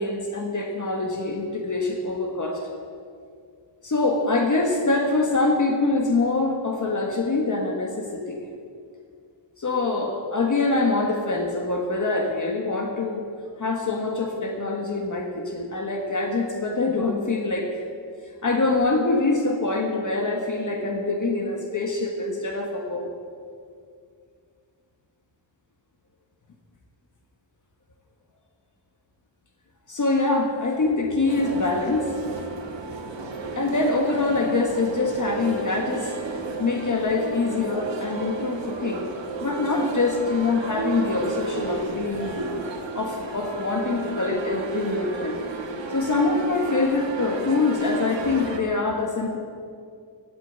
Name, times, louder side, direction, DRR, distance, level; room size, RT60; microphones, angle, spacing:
voice 1, 0.0-2.7 3.8-8.4 9.6-13.2 13.6-17.8 18.4-23.1 29.9-32.1 33.5-36.1 36.6-39.1 39.4-42.5 42.9-45.4 45.9-49.4, left 3 dB, 40° left, 2 dB, 1.5 m, -24 dB
sound 1, 31.3-48.6, right 3 dB, 70° right, 2.1 m, -33 dB
17.0 x 8.7 x 8.4 m, 2.3 s
wide cardioid pair, 165°, 45 cm